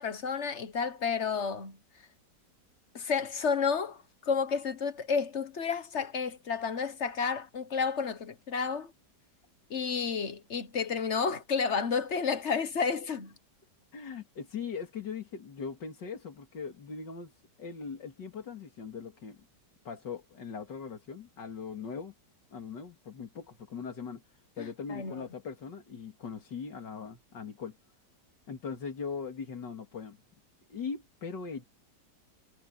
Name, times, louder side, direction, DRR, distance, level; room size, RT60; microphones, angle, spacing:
voice 1, 0.0-1.8 2.9-8.9 9.7-13.3 24.6-25.3, left 5 dB, 45° left, 1.4 m, -31 dB
voice 2, 13.9-17.3 17.6-19.4 19.8-22.1 22.5-24.2 24.6-27.8 28.5-30.2 30.7-31.6, left 5 dB, 75° left, 3.1 m, -40 dB
omnidirectional pair, 1.9 m